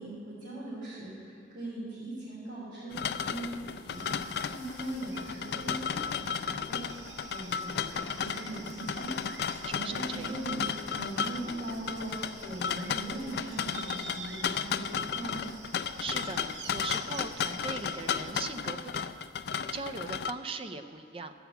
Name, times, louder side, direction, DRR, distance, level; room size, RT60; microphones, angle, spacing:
voice 1, 0.0-6.9 7.2-9.1 9.4-10.6 10.9-15.5, right 1 dB, 65° right, -11 dB, 3.4 m, -40 dB
sound 1, 2.9-20.3, left 7 dB, 65° left, 0.3 m, -34 dB
sound 2, 3.9-18.3, right 3 dB, 90° right, 1.2 m, -48 dB
voice 2, 9.6-10.4 16.0-19.3 19.7-21.3, right 3 dB, 30° right, 8 dB, 0.5 m, -39 dB
13.0 x 5.9 x 8.0 m, 2.4 s
head